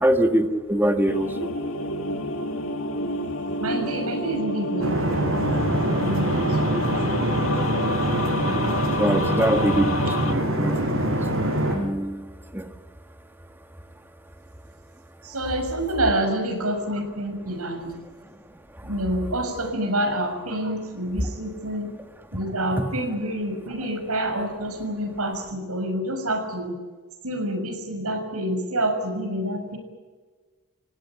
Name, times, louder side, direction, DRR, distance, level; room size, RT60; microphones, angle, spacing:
voice 1, 0.0-1.5 8.9-9.9 10.2-11.0 11.3-11.4 11.7-12.2 12.5-12.6, right 1 dB, 10° right, 6 dB, 1.7 m, -23 dB
sound 1, 1.1-10.4, left 2 dB, 60° left, 2.6 m, -29 dB
voice 2, 3.6-5.2 5.7-7.1 15.2-17.9 18.8-21.9 22.3-26.7 27.2-29.8, right 1 dB, 80° right, 5 dB, 6.5 m, -27 dB
sound 2, 4.8-11.8, right 1 dB, 65° right, 6.5 m, -24 dB
29.0 x 16.5 x 8.9 m, 1.4 s
head